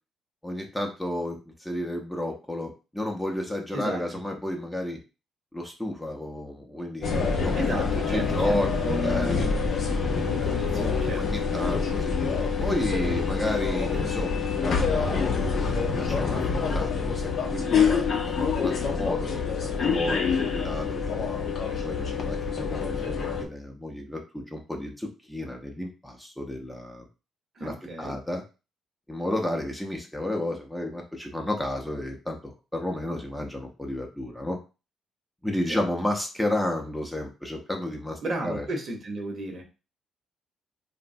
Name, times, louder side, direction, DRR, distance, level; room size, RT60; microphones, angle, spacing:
voice 1, 0.4-5.0 5.5-7.6 8.1-9.4 10.4-10.6 11.2-12.2 12.6-14.3 14.6-16.4 16.7-21.3 21.7-27.1 27.6-28.4 29.1-34.6 35.4-38.7, left 1 dB, 5° left, 2 dB, 0.6 m, -32 dB
voice 2, 3.7-4.0 7.5-9.6 10.2-11.4 18.8-19.2 27.6-28.2 35.7-35.8 38.2-39.6, right 1 dB, 50° right, 2 dB, 0.8 m, -34 dB
sound 1, 7.0-23.4, left 5 dB, 55° left, 0.5 m, -26 dB
3.0 x 2.1 x 2.6 m, 0.31 s
cardioid pair, 90°, 0 cm